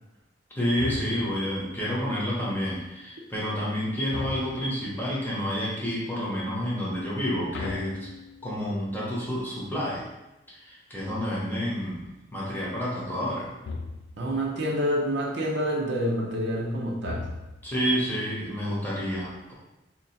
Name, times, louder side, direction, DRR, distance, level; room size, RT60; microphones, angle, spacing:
voice 1, 0.5-8.1 8.4-10.0 10.5-13.5 17.6-19.5, equal, 10° left, -6 dB, 0.9 m, -29 dB
sound 1, 0.8-1.5 4.1-4.9 7.5-8.7 13.6-14.3 17.0-17.8, left 3 dB, 80° left, 0.4 m, -37 dB
voice 2, 14.2-17.3, equal, 65° right, -2 dB, 0.6 m, -27 dB
2.9 x 2.6 x 4.0 m, 0.97 s
head